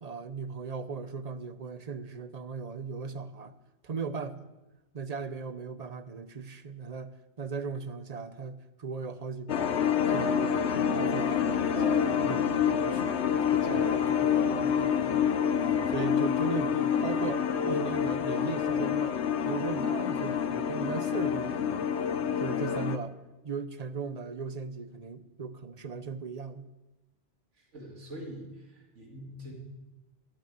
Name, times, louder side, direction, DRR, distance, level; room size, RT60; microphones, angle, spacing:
voice 1, 0.0-3.6 3.8-4.5 4.9-9.7 10.1-15.2 15.9-19.2 19.4-21.9 22.4-23.2 23.4-26.7, right 5 dB, 40° right, 12 dB, 0.7 m, -38 dB
sound 1, 9.5-23.0, left 8 dB, 70° left, 1.0 m, -27 dB
sound 2, 10.3-16.1, equal, 70° right, 4.8 m, -40 dB
voice 2, 27.7-29.5, equal, 85° right, 0 dB, 2.8 m, -44 dB
14.5 x 8.4 x 8.1 m, 1.1 s
omnidirectional pair, 1.2 m